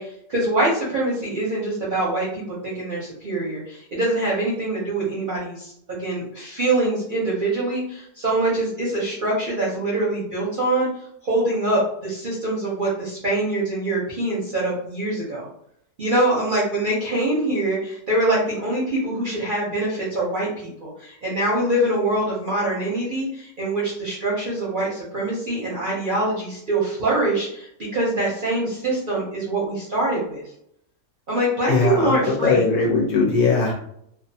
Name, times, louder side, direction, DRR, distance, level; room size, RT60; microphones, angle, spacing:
voice 1, 0.0-10.9 11.2-15.5 16.0-30.4 31.3-32.6, right 2 dB, 50° right, -6 dB, 0.6 m, -24 dB
voice 2, 31.7-33.7, left 4 dB, 60° left, -2 dB, 0.9 m, -20 dB
2.7 x 2.2 x 2.6 m, 0.70 s
omnidirectional pair, 1.7 m